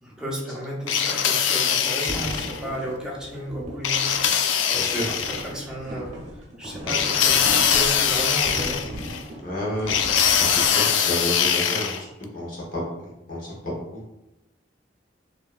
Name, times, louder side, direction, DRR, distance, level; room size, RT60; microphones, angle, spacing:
voice 1, 0.0-6.1 6.6-8.8, equal, 5° right, -5 dB, 0.8 m, -33 dB
sound 1, 0.9-2.6 3.8-5.5 6.9-9.2 9.9-12.0, left 8 dB, 85° left, 0.4 m, -22 dB
sound 2, 2.1-11.0, right 1 dB, 40° right, 1.0 m, -37 dB
voice 2, 4.7-5.0 6.8-6.9 9.4-10.0 10.4-12.0 12.3-14.0, left 1 dB, 45° left, -5 dB, 1.3 m, -30 dB
4.5 x 3.1 x 2.5 m, 0.93 s
head